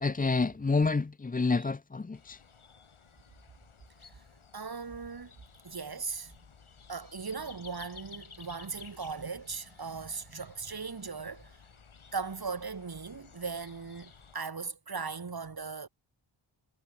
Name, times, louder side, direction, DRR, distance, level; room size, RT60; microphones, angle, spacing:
voice 1, 0.0-2.4, left 4 dB, 20° left, 0.5 m, -28 dB
sound 1, 2.1-14.4, left 5 dB, 75° left, 7.5 m, -55 dB
voice 2, 4.5-5.3 5.6-6.3 6.9-11.5 12.1-15.9, right 5 dB, 45° right, 2.6 m, -38 dB
wide cardioid pair, 65°, 49 cm